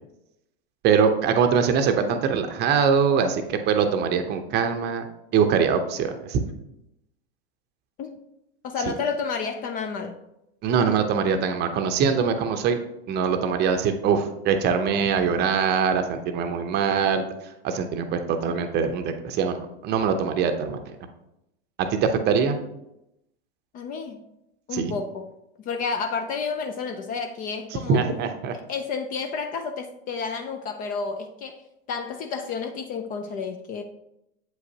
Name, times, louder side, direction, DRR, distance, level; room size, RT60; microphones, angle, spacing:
voice 1, 0.8-5.0 5.3-6.4 10.6-12.8 13.1-17.3 17.6-20.8 21.8-22.6 24.7-24.9 27.7-28.6, right 6 dB, 30° right, 7 dB, 0.7 m, -23 dB
voice 2, 8.6-10.2 23.7-24.2 24.7-25.3 25.6-28.1 28.7-31.6 31.9-33.8, left 5 dB, 25° left, 6 dB, 0.4 m, -30 dB
7.7 x 5.1 x 2.8 m, 0.86 s
hypercardioid pair, 115°, 32 cm